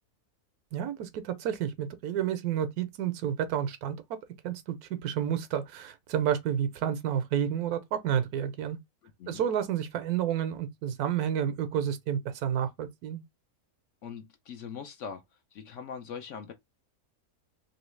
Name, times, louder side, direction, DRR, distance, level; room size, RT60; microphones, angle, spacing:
voice 1, 0.7-4.0 4.4-8.8 9.3-13.2, right 9 dB, 80° right, 1.1 m, -30 dB
voice 2, 9.0-9.4 14.0-15.2 15.5-16.5, left 6 dB, 65° left, 0.8 m, -41 dB
3.0 x 2.7 x 3.1 m
omnidirectional pair, 1.6 m